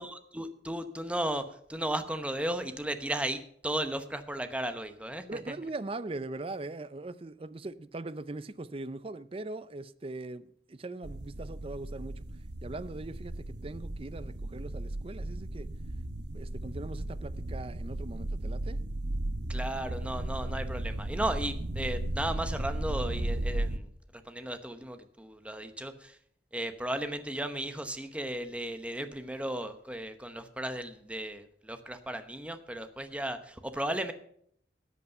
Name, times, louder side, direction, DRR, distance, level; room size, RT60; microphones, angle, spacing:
voice 1, 0.0-1.4 1.7-5.2 19.5-26.2 26.5-34.1, right 1 dB, 5° right, 0.9 m, -35 dB
voice 2, 5.3-12.3 12.6-15.7 16.3-18.8, right 2 dB, 30° right, 0.5 m, -40 dB
sound 1, 11.0-23.8, right 1 dB, 80° right, 0.9 m, -35 dB
13.5 x 8.4 x 5.5 m
head